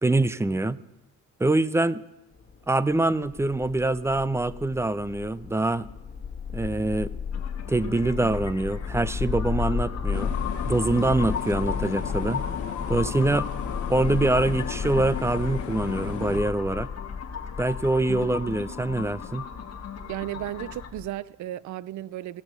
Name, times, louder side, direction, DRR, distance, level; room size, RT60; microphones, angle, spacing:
voice 1, 0.0-0.8 1.4-2.0 2.7-5.9 6.5-7.1 7.7-10.3 10.6-12.4 12.9-13.5 13.9-16.9 17.6-19.5, right 2 dB, 10° right, 0.4 m, -24 dB
sound 1, 2.3-21.1, left 6 dB, 35° left, 1.4 m, -34 dB
sound 2, 7.3-20.9, left 7 dB, 55° left, 1.5 m, -37 dB
sound 3, 10.1-16.4, left 8 dB, 75° left, 1.3 m, -36 dB
voice 2, 20.1-22.4, right 13 dB, 75° right, 0.5 m, -34 dB
16.5 x 6.0 x 6.7 m
cardioid pair, 90°, 30 cm